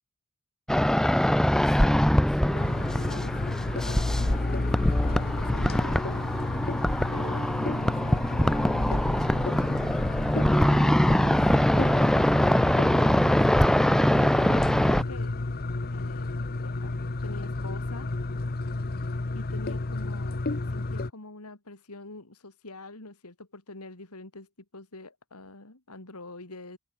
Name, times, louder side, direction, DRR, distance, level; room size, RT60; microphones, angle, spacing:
sound 1, 0.7-15.0, equal, ahead, 0.3 m, -23 dB
voice 1, 1.5-2.7 3.0-3.4 3.8-6.3 7.1-9.0 9.5-10.0 10.4-11.4 11.7-15.4 15.9-16.4 16.6-16.9 17.2-18.1 18.9-20.4 20.7-26.8, left 2 dB, 85° left, 3.1 m, -45 dB
sound 2, 2.5-21.1, left 2 dB, 45° left, 0.9 m, -31 dB
open air
head